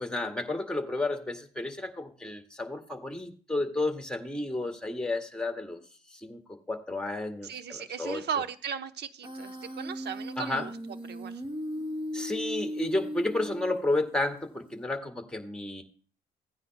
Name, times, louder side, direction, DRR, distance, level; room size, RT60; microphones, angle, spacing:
voice 1, 0.0-5.8 6.2-8.3 10.4-10.7 12.1-15.8, left 2 dB, 5° left, 4 dB, 1.9 m, -32 dB
voice 2, 7.4-10.7 11.1-11.4, right 7 dB, 60° right, 11 dB, 0.9 m, -36 dB
Human voice, 9.2-14.2, equal, 25° right, 1.5 m, -37 dB
16.5 x 9.6 x 2.2 m, 0.41 s
cardioid pair, 90°, 20 cm